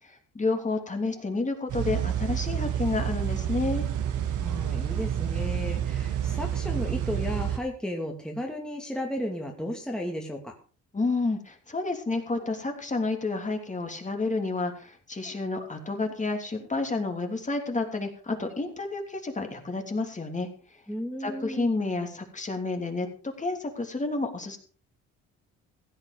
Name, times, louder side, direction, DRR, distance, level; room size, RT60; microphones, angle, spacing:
voice 1, 0.0-3.9 10.9-20.5 21.2-24.6, left 3 dB, 25° left, 4 dB, 3.1 m, -30 dB
sound 1, 1.7-7.6, right 10 dB, 80° right, 2.1 m, -29 dB
voice 2, 4.4-10.5 20.9-21.7, left 1 dB, ahead, 1 dB, 2.6 m, -34 dB
16.0 x 8.3 x 5.2 m, 0.40 s
cardioid pair, 90°, 30 cm